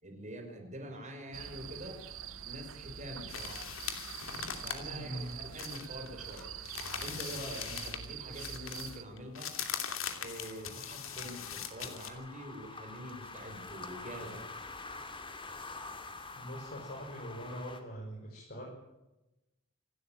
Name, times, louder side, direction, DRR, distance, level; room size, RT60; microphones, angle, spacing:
voice 1, 0.0-2.0 2.4-3.7 4.6-6.5 7.0-9.5 10.2-14.6, equal, 35° right, 4 dB, 5.3 m, -45 dB
sound 1, 1.3-9.0, right 8 dB, 80° right, 1.2 m, -45 dB
sound 2, 2.9-17.8, left 3 dB, 25° left, 2.5 m, -49 dB
sound 3, 3.3-8.1 8.3-12.1, left 8 dB, 75° left, 2.8 m, -41 dB
voice 2, 4.9-5.3 16.4-18.7, equal, 50° left, -2 dB, 6.2 m, -42 dB
27.0 x 13.0 x 9.1 m, 0.97 s
head